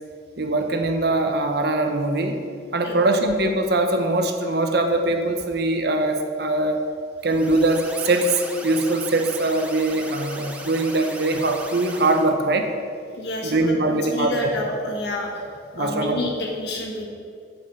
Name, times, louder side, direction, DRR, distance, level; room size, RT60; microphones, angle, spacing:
voice 1, 0.4-2.4 2.7-6.8 7.2-12.7 13.4-14.5 15.7-16.2, right 2 dB, 55° right, 5 dB, 0.9 m, -22 dB
sound 1, 7.2-12.3, right 1 dB, 5° right, 0.7 m, -37 dB
voice 2, 13.1-15.4 15.8-17.1, left 2 dB, 55° left, -1 dB, 1.7 m, -29 dB
8.2 x 8.0 x 5.5 m, 2.3 s
head